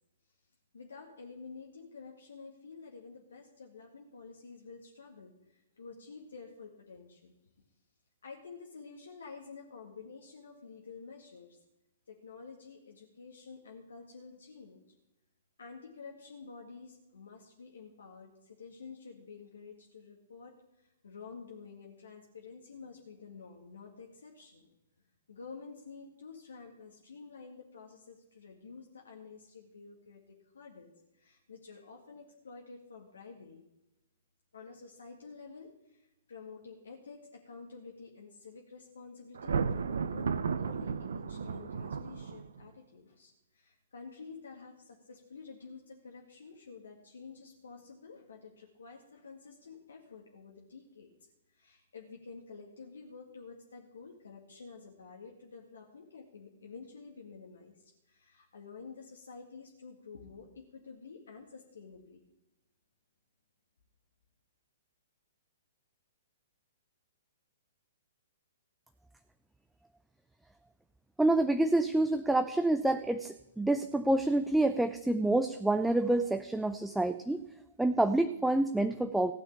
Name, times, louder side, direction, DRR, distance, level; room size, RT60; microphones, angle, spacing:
voice 1, 0.7-7.3 8.2-11.6 12.1-14.8 15.6-24.7 25.3-33.6 34.5-51.1 51.5-57.8 58.1-62.2, left 4 dB, 65° left, 0 dB, 1.9 m, -50 dB
Thunder, 39.3-42.7, right 6 dB, 60° right, 0.7 m, -34 dB
voice 2, 71.2-77.4 77.8-79.3, right 2 dB, 5° right, 9 dB, 0.5 m, -28 dB
15.5 x 6.4 x 8.5 m, 0.93 s
figure-of-eight pair, 115°, 0 cm